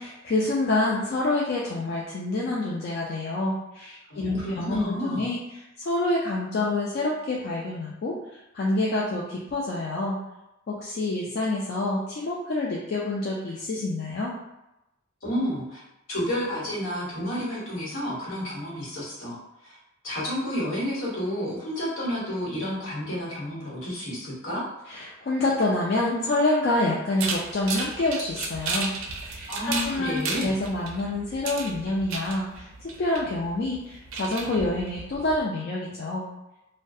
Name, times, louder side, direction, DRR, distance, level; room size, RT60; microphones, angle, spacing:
voice 1, 0.0-5.4 5.8-10.2 10.7-14.4 24.9-28.9 29.2-32.7 33.0-36.3, left 2 dB, 50° left, -4 dB, 0.3 m, -27 dB
voice 2, 4.1-5.3 15.2-15.8 16.1-19.4 19.6-19.8 20.0-24.6 29.5-30.6, equal, 75° left, -7 dB, 1.1 m, -30 dB
sound 1, 27.2-35.4, right 4 dB, 85° right, 0.4 m, -34 dB
2.6 x 2.1 x 2.3 m, 0.91 s
head